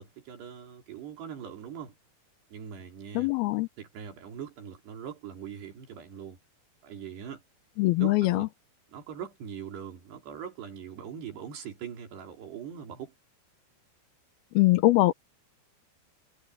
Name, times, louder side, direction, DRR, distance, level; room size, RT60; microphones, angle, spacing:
voice 1, 0.0-2.0 2.5-3.3 3.8-6.4 6.8-7.4 8.0-8.5 8.9-13.1, right 8 dB, 80° right, 5.8 m, -41 dB
voice 2, 3.2-3.7 7.8-8.5 14.6-15.1, left 18 dB, 80° left, 2.5 m, -22 dB
omnidirectional pair, 4.7 m